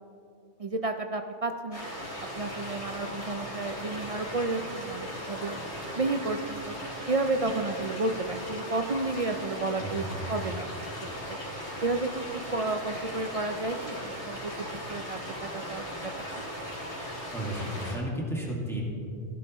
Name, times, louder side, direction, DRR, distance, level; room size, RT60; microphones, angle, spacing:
voice 1, 0.6-1.9 2.4-5.6 6.0-6.7 7.1-10.0 10.3-10.9 11.3-11.4 11.8-14.5 14.9-15.2 15.5-16.1, right 3 dB, 50° right, 6 dB, 0.4 m, -31 dB
sound 1, 1.7-18.0, equal, 80° left, 3.2 m, -38 dB
voice 2, 9.8-10.2 17.3-18.8, right 1 dB, ahead, -3 dB, 2.0 m, -33 dB
16.5 x 11.5 x 3.1 m, 2.5 s
omnidirectional pair, 1.2 m